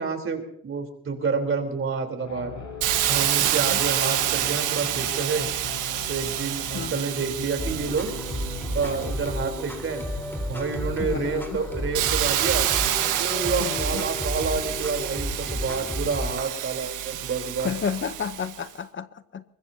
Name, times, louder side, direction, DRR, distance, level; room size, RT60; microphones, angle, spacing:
voice 1, 0.0-2.5 3.1-5.5 6.1-8.2 8.7-10.0 10.5-12.7 13.2-17.7, right 4 dB, 45° right, 5 dB, 3.8 m, -29 dB
sound 1, 2.2-10.1, left 2 dB, 65° left, 7.1 m, -39 dB
Hiss, 2.8-10.4 10.9-18.6, right 12 dB, 90° right, 1.4 m, -28 dB
sound 2, 7.6-16.4, left 1 dB, 5° left, 4.0 m, -32 dB
voice 2, 11.0-11.6 13.6-14.1 17.6-19.4, left 7 dB, 40° left, 12 dB, 0.9 m, -31 dB
23.0 x 21.0 x 2.8 m, 0.73 s
cardioid pair, 90°, 30 cm